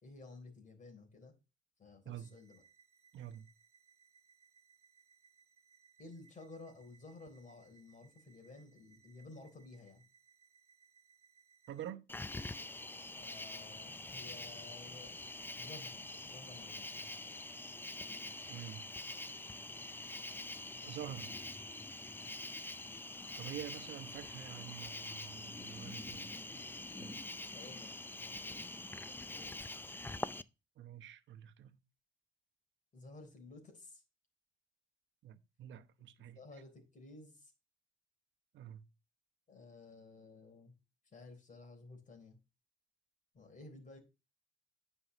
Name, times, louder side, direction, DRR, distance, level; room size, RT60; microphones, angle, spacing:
voice 1, 0.0-1.3 1.8-2.6 6.0-10.0 13.1-15.2 15.6-16.0 16.3-16.9 22.2-22.4 27.5-27.9 28.2-28.6 29.4-29.6 32.9-34.0 36.2-37.5 39.5-40.7 41.1-42.4 43.3-44.0, left 3 dB, 40° left, 3.8 m, -54 dB
sound 1, 2.2-11.9, right 6 dB, 25° right, 3.7 m, -68 dB
voice 2, 11.7-12.1 18.5-18.8 20.8-21.3 23.4-26.6 27.0-27.2 30.8-31.8 35.2-36.4 38.5-38.8, right 11 dB, 70° right, 1.0 m, -47 dB
Cricket, 12.1-30.4, left 2 dB, 10° left, 0.4 m, -45 dB
9.7 x 5.5 x 3.1 m
cardioid pair, 90°, 20 cm